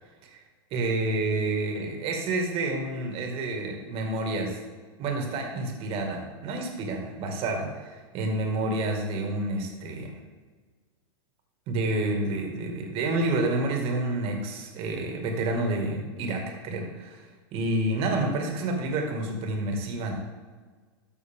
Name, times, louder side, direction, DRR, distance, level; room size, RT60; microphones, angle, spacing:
voice 1, 0.7-4.6 5.0-10.1 11.7-17.2 17.5-20.1, right 2 dB, 40° right, 2 dB, 2.2 m, -29 dB
13.0 x 6.2 x 3.7 m, 1.5 s
hypercardioid pair, 125°, 14 cm